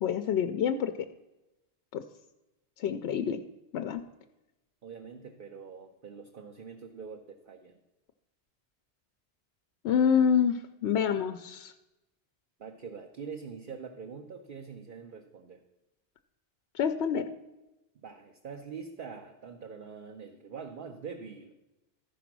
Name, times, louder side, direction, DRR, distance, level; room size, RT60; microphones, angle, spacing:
voice 1, 0.0-1.1 1.9-2.0 2.8-3.4 3.7-4.0 9.8-11.7 16.7-17.3, left 7 dB, 80° left, 9 dB, 0.8 m, -27 dB
voice 2, 4.8-7.8 12.6-15.6 18.0-21.5, right 6 dB, 55° right, 3 dB, 0.9 m, -44 dB
13.5 x 5.0 x 5.9 m, 0.98 s
omnidirectional pair, 1.1 m